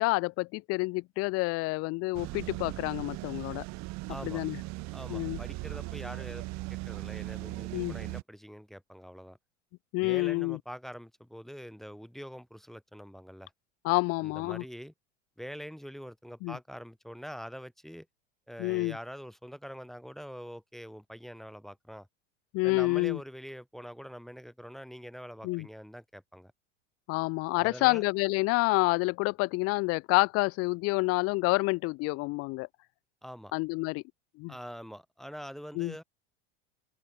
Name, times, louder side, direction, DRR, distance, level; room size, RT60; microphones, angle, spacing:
voice 1, 0.0-3.6 4.2-4.6 5.1-5.4 7.7-8.0 9.9-10.6 13.8-14.6 16.4-16.6 18.6-19.0 22.5-23.2 25.4-25.7 27.1-32.7 33.5-34.0 34.4-34.5 35.7-36.0, left 24 dB, 45° left, 0.5 m, -28 dB
sound 1, 2.1-8.2, right 22 dB, 50° right, 3.0 m, -39 dB
voice 2, 4.1-4.4 4.9-9.4 10.0-13.5 14.2-14.9 15.4-18.1 18.5-22.1 22.6-26.5 27.6-28.0 33.2-33.5 34.5-36.0, equal, ahead, 2.5 m, -44 dB
open air
hypercardioid pair, 95°, 35 cm